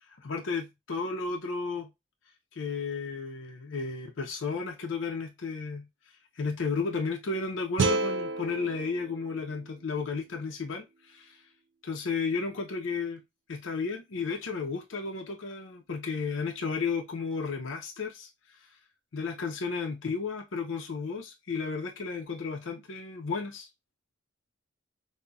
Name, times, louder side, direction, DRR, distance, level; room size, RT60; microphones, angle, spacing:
voice 1, 0.2-1.9 2.5-5.9 6.3-11.5 11.8-13.2 13.5-18.7 19.1-23.7, left 4 dB, 75° left, 0.5 m, -33 dB
sound 1, 7.8-10.9, right 3 dB, 65° right, 0.4 m, -32 dB
5.3 x 2.1 x 2.3 m
head